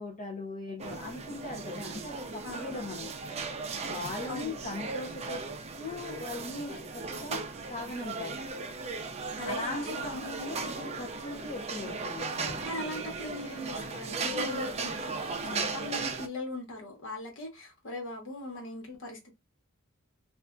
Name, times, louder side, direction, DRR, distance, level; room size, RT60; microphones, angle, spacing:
voice 1, 0.0-3.1 3.8-5.5 5.8-8.4 9.4-12.7 15.4-15.6, left 2 dB, 35° left, 0.6 m, -39 dB
sound 1, 0.8-16.3, right 4 dB, 30° right, 0.5 m, -37 dB
voice 2, 2.4-2.8 4.3-4.5 9.4-10.2 12.6-19.3, left 2 dB, 60° left, 1.1 m, -40 dB
3.2 x 2.4 x 2.5 m
head